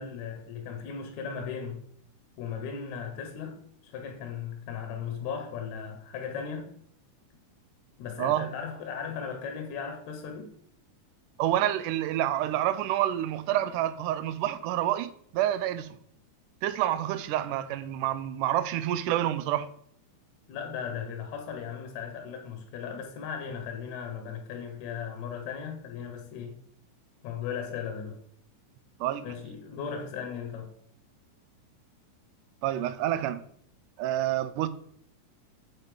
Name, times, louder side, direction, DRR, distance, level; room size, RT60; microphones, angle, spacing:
voice 1, 0.0-1.9 2.4-3.6 3.8-6.7 8.0-10.5 20.5-26.6 27.2-28.2 29.2-30.7, left 7 dB, 70° left, 2.3 m, -37 dB
voice 2, 8.2-8.5 11.4-15.9 16.6-19.7 29.0-29.3 32.6-33.4 34.0-34.7, right 12 dB, 85° right, 2.1 m, -28 dB
8.8 x 4.1 x 5.0 m
omnidirectional pair, 3.6 m